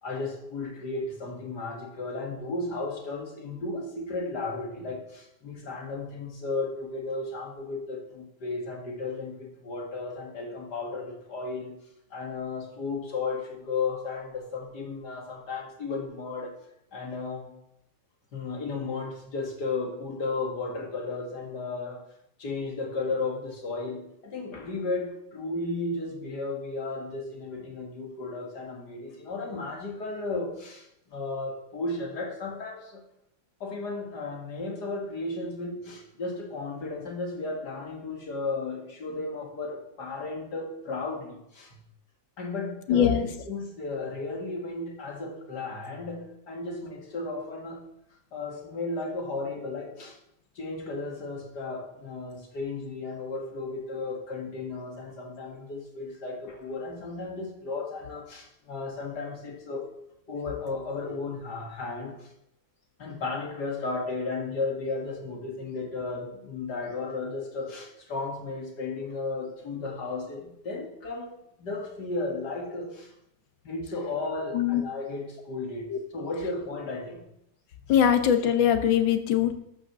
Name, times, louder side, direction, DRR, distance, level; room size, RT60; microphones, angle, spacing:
voice 1, 0.0-11.8 12.1-16.5 16.9-17.6 18.3-22.0 22.4-33.0 33.6-41.8 42.4-47.8 48.3-50.2 50.6-59.9 60.3-62.3 63.0-71.3 71.6-73.1 73.6-77.3, left 3 dB, 60° left, 2 dB, 2.5 m, -34 dB
voice 2, 42.9-43.3 74.5-74.8 75.9-76.0 77.9-79.5, left 9 dB, 80° left, 8 dB, 1.8 m, -22 dB
13.0 x 6.4 x 6.2 m, 0.79 s
omnidirectional pair, 2.0 m